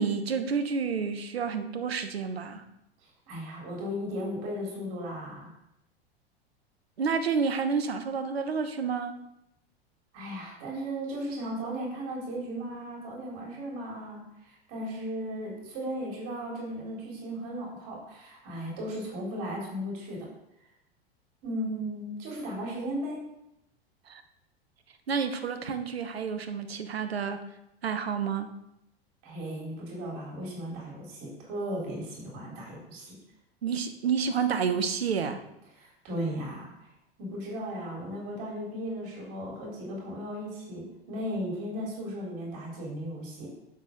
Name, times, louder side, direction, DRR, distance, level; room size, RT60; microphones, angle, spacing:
voice 1, 0.0-2.6 7.0-9.2 24.1-24.2 25.1-27.4 27.8-28.5 33.6-35.4, right 6 dB, 75° right, 9 dB, 1.2 m, -29 dB
voice 2, 3.0-5.5 10.1-20.3 21.4-23.2 29.2-33.2 35.8-36.9 37.2-43.5, equal, 50° right, -2 dB, 3.8 m, -36 dB
8.2 x 7.2 x 5.2 m, 0.85 s
figure-of-eight pair, 90°, 31 cm